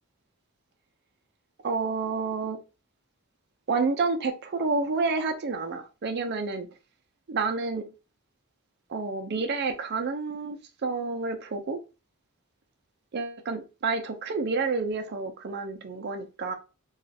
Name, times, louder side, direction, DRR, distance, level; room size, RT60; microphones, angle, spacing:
voice 1, 1.6-2.6 3.7-6.7 7.3-7.9 8.9-11.8 13.1-16.5, right 4 dB, 45° right, 5 dB, 0.5 m, -29 dB
3.0 x 2.4 x 2.7 m, 0.31 s
head